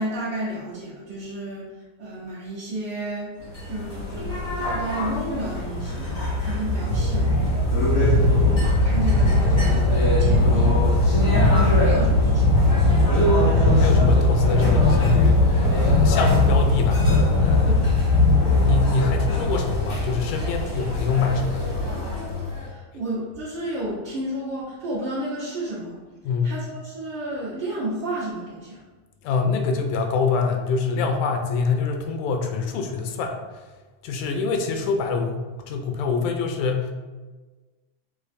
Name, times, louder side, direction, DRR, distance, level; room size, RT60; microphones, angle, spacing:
voice 1, 0.0-1.7 2.0-3.3 3.7-7.3 8.0-13.2 17.6-17.8 22.4-26.0 26.4-28.8, right 1 dB, 65° right, -10 dB, 1.2 m, -32 dB
sound 1, 3.5-22.7, left 2 dB, 50° left, 0.7 m, -20 dB
voice 2, 8.0-8.5 11.3-11.5 13.7-17.0 17.4-17.7 18.6-21.9 26.2-26.6 29.2-33.4 34.0-36.9, left 4 dB, 80° left, 4 dB, 2.0 m, -25 dB
6.2 x 3.0 x 2.6 m, 1.3 s
omnidirectional pair, 3.4 m